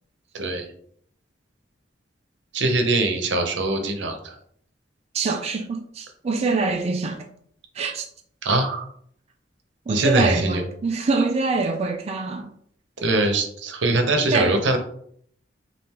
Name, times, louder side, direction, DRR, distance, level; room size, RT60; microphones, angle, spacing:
voice 1, 0.3-0.7 2.5-4.3 8.4-8.8 9.9-10.6 13.0-14.8, right 2 dB, 80° right, 0.8 m, -22 dB
voice 2, 5.1-7.2 7.7-8.1 9.9-12.5 14.3-14.6, right 3 dB, 35° right, 0.4 m, -24 dB
3.5 x 2.5 x 4.3 m
head